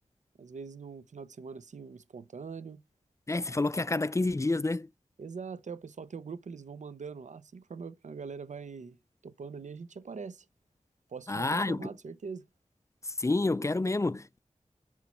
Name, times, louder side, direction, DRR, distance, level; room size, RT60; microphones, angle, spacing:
voice 1, 0.4-2.8 5.2-9.0 9.2-10.5 11.1-12.5, right 5 dB, 70° right, 0.5 m, -43 dB
voice 2, 3.3-4.9 11.3-11.9 13.1-14.4, left 2 dB, 25° left, 0.3 m, -29 dB
6.0 x 5.9 x 4.3 m
cardioid pair, 45°, 13 cm